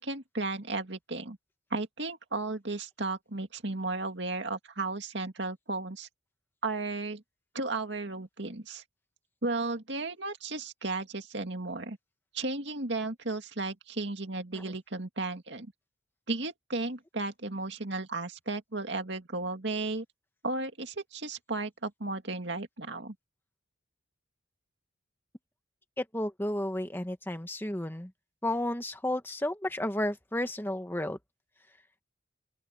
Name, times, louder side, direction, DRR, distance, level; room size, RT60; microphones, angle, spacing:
voice 1, 0.0-1.4 1.7-6.1 6.6-7.2 7.5-8.8 9.4-12.0 12.3-15.7 16.3-20.0 20.4-23.1, right 3 dB, 60° right, 2.4 m, -34 dB
voice 2, 26.0-28.1 28.4-31.2, left 1 dB, 10° left, 1.2 m, -32 dB
open air
head